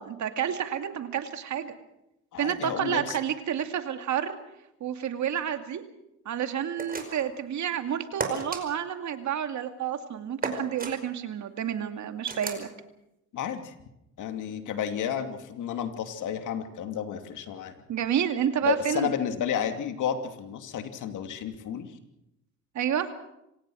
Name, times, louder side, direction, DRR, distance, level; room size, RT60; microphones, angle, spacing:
voice 1, 0.0-1.7 2.4-4.4 4.8-5.8 6.3-12.7 17.9-19.1 22.7-23.1, right 9 dB, 70° right, 8 dB, 2.4 m, -30 dB
voice 2, 2.3-3.2 13.3-13.7 14.2-17.7 18.6-21.9, left 8 dB, 80° left, 7 dB, 2.7 m, -31 dB
sound 1, 6.8-7.3 8.2-8.6 10.4-10.9 12.3-12.7, right 3 dB, 30° right, 5.1 m, -33 dB
26.5 x 18.0 x 6.3 m, 0.83 s
cardioid pair, 90°, 30 cm